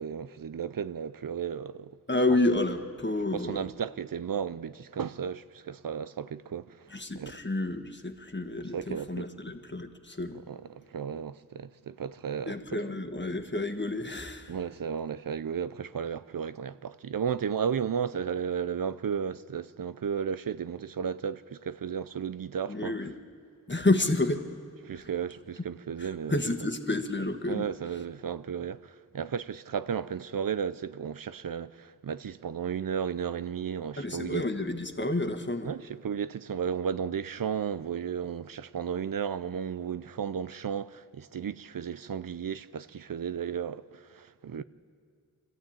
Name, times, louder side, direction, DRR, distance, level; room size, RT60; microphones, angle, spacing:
voice 1, 0.0-2.0 2.3-2.4 3.5-7.3 8.7-9.3 10.5-12.6 14.5-23.0 24.8-26.4 27.5-34.4 35.6-44.6, right 7 dB, 80° right, 0.5 m, -34 dB
voice 2, 2.1-3.7 6.9-10.4 12.5-14.6 22.7-23.1 23.7-24.5 24.9-25.1 26.0-27.7 34.0-35.7 44.5-44.6, left 2 dB, 35° left, 1.6 m, -30 dB
24.5 x 14.0 x 8.8 m
wide cardioid pair, 45°, 33 cm